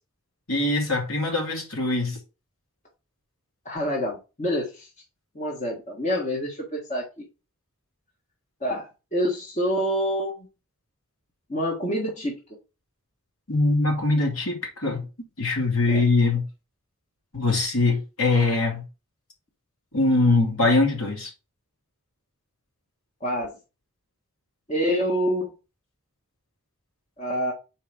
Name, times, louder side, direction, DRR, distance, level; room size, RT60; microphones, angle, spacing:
voice 1, 0.5-2.2 13.5-15.0 15.4-16.5 17.3-18.8 19.9-21.3, left 3 dB, 75° left, 2.7 m, -22 dB
voice 2, 3.6-4.9 5.3-7.2 8.6-10.5 11.5-12.4 15.9-16.0 23.2-23.5 24.7-25.5 27.2-27.5, equal, 30° left, 1.6 m, -27 dB
5.3 x 4.5 x 5.2 m
head